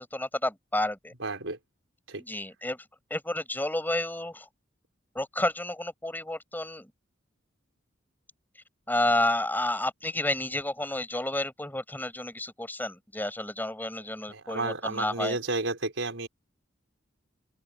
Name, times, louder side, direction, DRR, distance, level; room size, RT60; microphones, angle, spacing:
voice 1, 0.0-1.1 2.2-2.8 3.1-4.5 5.1-6.9 8.9-15.4, left 1 dB, 10° left, 7.5 m, -30 dB
voice 2, 1.2-1.6 2.1-2.2 14.3-16.3, right 3 dB, 75° right, 5.2 m, -32 dB
open air
head